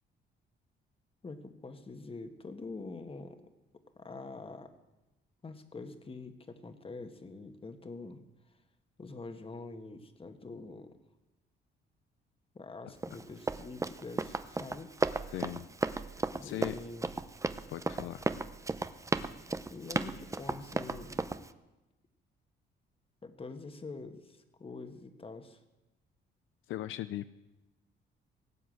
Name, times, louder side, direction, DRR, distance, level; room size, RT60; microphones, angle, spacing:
voice 1, 1.2-3.4 3.9-4.7 5.4-8.2 9.0-10.9 12.5-15.0 16.3-17.1 19.6-21.4 23.2-25.6, left 3 dB, 30° left, 8 dB, 1.5 m, -45 dB
Run, 13.0-21.5, right 3 dB, 15° right, 0.6 m, -35 dB
voice 2, 15.3-15.7 16.4-16.8 17.7-18.4 26.7-27.3, left 13 dB, 80° left, 13 dB, 0.5 m, -39 dB
18.0 x 8.0 x 7.8 m, 1.0 s
cardioid pair, 90°, 20 cm